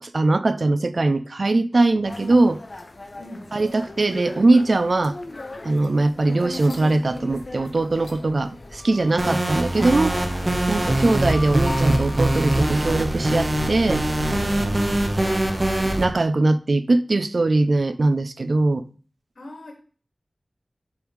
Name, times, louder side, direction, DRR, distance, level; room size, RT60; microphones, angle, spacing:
voice 1, 0.0-2.6 3.5-5.2 5.6-10.2 10.7-14.0 16.0-18.8, right 2 dB, 60° right, 0.5 m, -21 dB
sound 1, 2.0-13.6, left 2 dB, 50° left, 0.7 m, -39 dB
voice 2, 3.2-3.5 19.4-19.7, left 1 dB, 80° left, 2.2 m, -39 dB
sound 2, 9.2-16.0, right 1 dB, 35° right, 1.0 m, -23 dB
8.1 x 5.3 x 3.2 m
wide cardioid pair, 50°, 0 cm